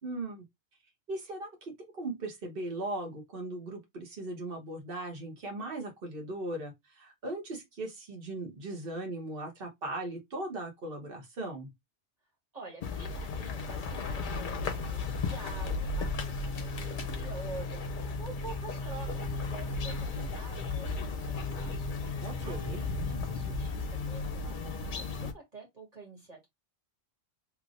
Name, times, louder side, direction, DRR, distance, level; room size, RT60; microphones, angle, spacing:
voice 1, 0.0-0.4 1.1-11.7 22.2-22.8, right 2 dB, 50° right, 1.3 m, -38 dB
voice 2, 12.5-22.1 22.4-26.5, right 3 dB, 35° right, 2.0 m, -48 dB
sound 1, 12.8-25.3, left 3 dB, 50° left, 0.8 m, -35 dB
3.3 x 3.1 x 2.5 m
omnidirectional pair, 1.2 m